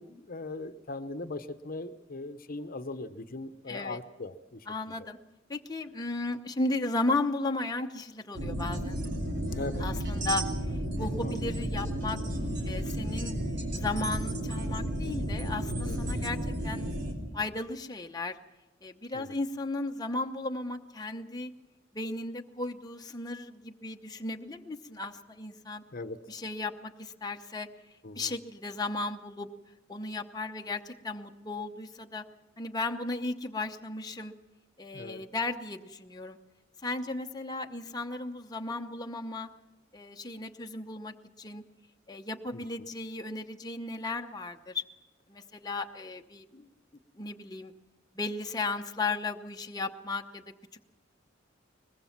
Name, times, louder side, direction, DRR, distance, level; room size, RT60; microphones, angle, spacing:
voice 1, 0.0-5.0 9.5-9.8 11.2-11.4 15.8-16.3 19.1-19.3 25.9-26.2 28.0-28.3 34.9-35.2 42.5-42.6, left 2 dB, 50° left, 10 dB, 0.9 m, -40 dB
voice 2, 3.7-4.0 4.7-5.2 5.5-9.0 9.8-12.2 12.6-13.3 13.7-16.4 16.6-16.8 17.3-18.4 18.8-21.5 21.9-25.8 26.3-27.7 28.2-29.5 29.9-32.2 32.6-34.3 34.8-36.4 36.8-39.5 39.9-41.6 42.1-44.8 45.3-46.7 47.2-47.7 48.1-50.4, left 2 dB, 20° left, 3 dB, 0.9 m, -35 dB
sound 1, 8.3-17.1, right 1 dB, 65° right, 3.5 m, -32 dB
22.5 x 20.5 x 5.9 m, 1.0 s
head